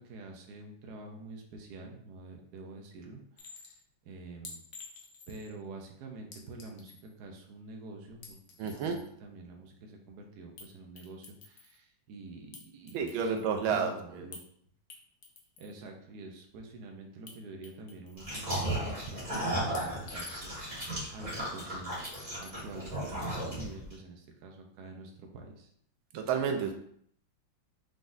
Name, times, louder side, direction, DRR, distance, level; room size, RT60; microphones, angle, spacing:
voice 1, 0.0-3.6 4.0-4.6 5.3-8.4 8.7-14.4 15.6-21.9 22.4-25.7, right 2 dB, 65° right, 2 dB, 1.1 m, -47 dB
Chink clink, 3.4-3.8 4.4-5.5 6.3-7.1 8.1-9.1 10.6-10.7 11.0-11.8 12.5-13.5 14.3-14.5 14.9-15.8 17.3-17.4 17.6-18.5 19.7-20.7 22.1-22.7, left 4 dB, 80° left, 0.5 m, -50 dB
voice 2, 8.6-9.0 12.9-14.3 26.1-26.8, right 6 dB, 85° right, 4 dB, 1.4 m, -31 dB
sound 1, 18.2-23.9, right 1 dB, 20° right, 2.0 m, -35 dB
4.7 x 3.9 x 2.6 m, 0.65 s
omnidirectional pair, 2.2 m